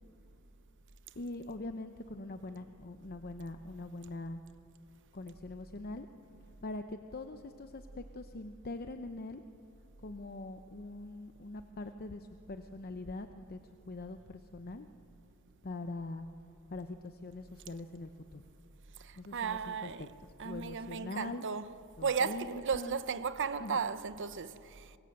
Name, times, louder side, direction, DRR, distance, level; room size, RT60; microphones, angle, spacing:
voice 1, 1.1-4.4 5.1-6.1 6.6-9.4 10.0-13.6 13.9-14.9 15.6-16.3 16.7-18.4 19.2-20.1 20.4-21.5 22.0-23.0 23.6-23.8, left 2 dB, 45° left, 0.7 m, -43 dB
voice 2, 19.0-20.1 20.4-21.7 22.0-25.0, right 5 dB, 55° right, 0.8 m, -35 dB
24.0 x 21.0 x 7.8 m
head